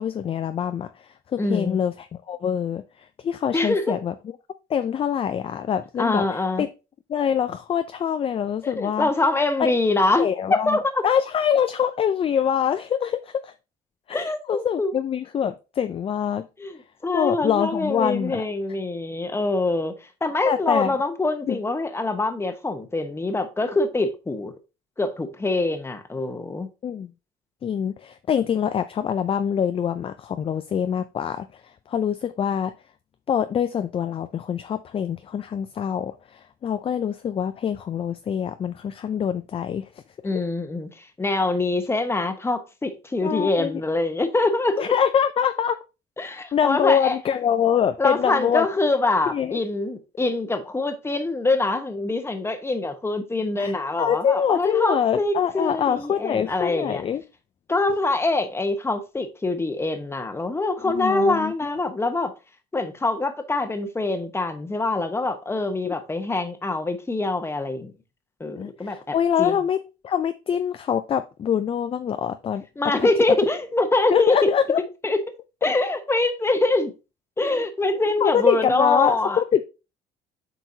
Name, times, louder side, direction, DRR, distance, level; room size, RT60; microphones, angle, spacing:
voice 1, 0.0-4.1 4.7-6.2 6.6-6.7 7.1-9.1 9.6-9.7 10.2-13.5 14.1-16.5 17.1-18.4 20.5-20.9 21.5-21.6 26.8-27.1 27.6-31.6 31.9-32.7 33.3-39.9 43.2-43.8 44.8-45.8 46.5-48.7 49.3-49.6 53.6-57.2 60.8-61.7 65.8-65.9 68.6-72.6 73.0-73.1 74.1-74.8 78.2-79.6, left 8 dB, 35° left, 0.4 m, -24 dB
voice 2, 1.4-1.8 3.5-4.0 6.0-6.7 8.8-11.0 14.1-14.9 16.6-19.9 20.2-24.5 25.0-26.7 40.2-44.8 46.2-47.2 48.0-57.0 57.7-62.3 62.7-67.9 68.4-69.6 72.8-74.5 75.0-75.2 75.6-76.9 77.4-79.4, left 2 dB, 15° left, 1.0 m, -24 dB
7.7 x 4.5 x 2.7 m
cardioid pair, 110°, 17 cm